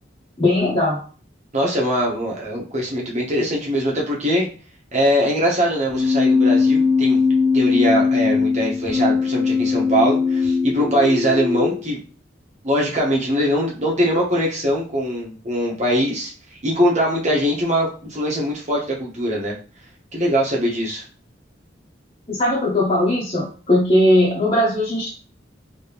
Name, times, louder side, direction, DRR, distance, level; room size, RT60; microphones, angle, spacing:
voice 1, 0.4-1.0 22.3-25.1, left 1 dB, 30° left, -6 dB, 1.0 m, -19 dB
voice 2, 1.5-4.5 4.9-12.0 12.6-16.3 16.6-19.5 20.1-21.0, equal, 40° right, -2 dB, 1.1 m, -22 dB
Keyboard (musical), 5.9-11.8, left 5 dB, 5° right, 1.3 m, -19 dB
3.1 x 2.9 x 3.5 m, 0.39 s
head